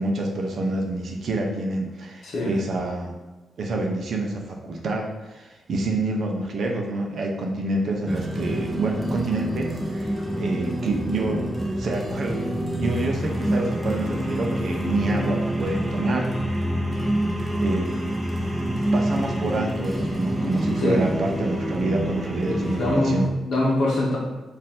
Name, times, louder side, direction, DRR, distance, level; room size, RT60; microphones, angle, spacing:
voice 1, 0.0-3.1 3.6-11.5 11.8-16.3 17.6-17.9 18.6-23.3, right 2 dB, 45° right, 1 dB, 0.6 m, -27 dB
sound 1, 8.1-23.0, right 1 dB, 5° right, 0.4 m, -27 dB
voice 2, 22.5-23.2 23.4-24.2, left 1 dB, 50° left, -2 dB, 1.0 m, -23 dB
4.5 x 2.6 x 3.7 m, 1.2 s
wide cardioid pair, 175°, 0 cm